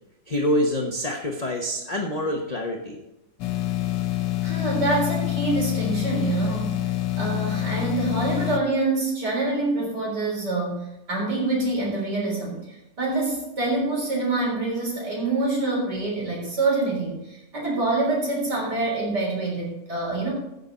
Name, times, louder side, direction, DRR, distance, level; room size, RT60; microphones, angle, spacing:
voice 1, 0.3-3.0, left 1 dB, 25° left, 1 dB, 0.9 m, -26 dB
sound 1, 3.4-8.6, left 15 dB, 75° left, 1.5 m, -26 dB
voice 2, 4.4-6.8 7.2-20.3, right 2 dB, 65° right, -3 dB, 4.4 m, -26 dB
15.5 x 6.8 x 4.1 m, 0.91 s
omnidirectional pair, 2.0 m